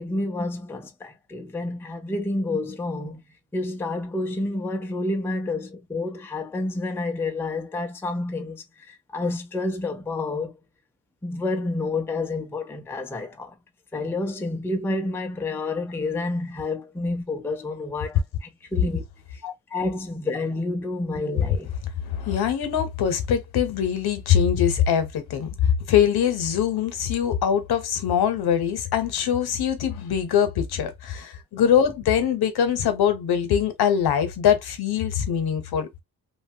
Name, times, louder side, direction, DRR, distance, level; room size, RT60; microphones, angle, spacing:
voice 1, 0.0-3.2 3.5-10.6 11.2-13.5 13.9-19.0 19.3-19.4 19.7-21.7, left 2 dB, 5° left, 0.4 m, -29 dB
voice 2, 22.0-25.5 25.9-36.0, left 8 dB, 80° left, 0.9 m, -23 dB
3.0 x 2.1 x 2.7 m
wide cardioid pair, 160°, 37 cm